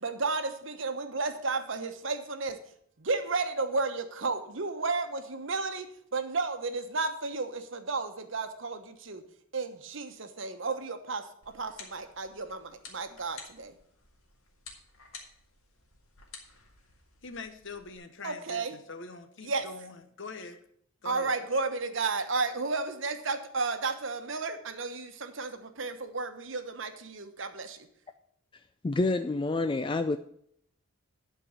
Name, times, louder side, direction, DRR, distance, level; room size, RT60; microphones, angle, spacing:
voice 1, 0.0-2.6 3.0-9.2 9.5-11.2 11.5-13.7 18.2-18.8 19.4-19.7 21.0-27.8, right 3 dB, 60° right, 1.1 m, -33 dB
sound 1, 11.4-18.0, left 4 dB, 75° left, 2.2 m, -52 dB
voice 2, 17.2-20.6 21.0-21.4, left 3 dB, 55° left, 1.0 m, -43 dB
voice 3, 28.8-30.2, left 2 dB, 20° left, 0.3 m, -27 dB
11.5 x 4.6 x 7.8 m
head